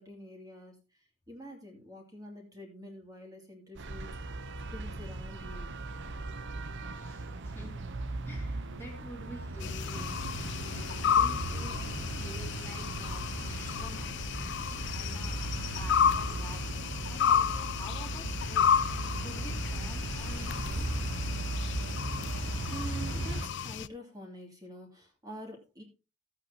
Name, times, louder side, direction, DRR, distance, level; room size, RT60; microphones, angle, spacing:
voice 1, 0.0-4.4 4.7-5.7 22.5-25.8, equal, 15° right, 1 dB, 2.7 m, -47 dB
sound 1, 3.7-23.5, right 2 dB, 55° right, 0.9 m, -37 dB
voice 2, 6.9-10.4 10.7-11.8 12.2-15.4 15.7-16.7 17.0-18.7 19.2-20.9, equal, 10° left, -2 dB, 2.7 m, -49 dB
sound 2, 9.6-23.9, left 8 dB, 55° left, 0.4 m, -32 dB
14.5 x 8.6 x 2.9 m, 0.29 s
head